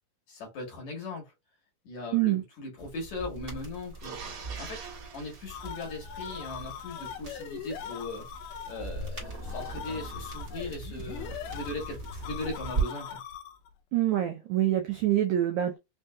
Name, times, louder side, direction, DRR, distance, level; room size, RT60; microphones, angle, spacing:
voice 1, 0.3-1.3 1.8-4.2 4.6-4.8 5.1-8.3 8.7-13.2, left 2 dB, 60° left, 2.3 m, -39 dB
sound 1, 2.8-12.8, right 3 dB, 40° right, 1.4 m, -39 dB
sound 2, 4.0-6.7 9.1-10.6, right 5 dB, 55° right, 2.4 m, -45 dB
sound 3, 5.5-13.7, left 9 dB, 80° left, 1.9 m, -42 dB
voice 2, 13.9-15.8, right 13 dB, 85° right, 1.7 m, -25 dB
5.5 x 2.7 x 2.2 m
omnidirectional pair, 4.3 m